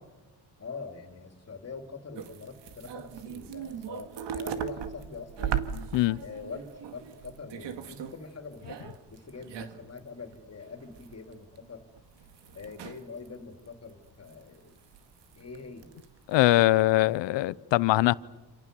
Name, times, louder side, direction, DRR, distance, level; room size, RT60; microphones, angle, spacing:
voice 1, 0.6-5.6 6.2-11.8 12.5-14.7 15.3-15.9, left 4 dB, 35° left, 3.4 m, -44 dB
sound 1, 2.2-8.2 8.5-10.0 10.3-10.4 10.8-11.3 11.6-13.3 13.7-14.3 14.8-15.6 15.8-16.3, right 8 dB, 75° right, 2.1 m, -38 dB
voice 2, 16.3-18.1, left 17 dB, 85° left, 0.8 m, -22 dB
28.5 x 27.5 x 7.0 m
cardioid pair, 100°, 43 cm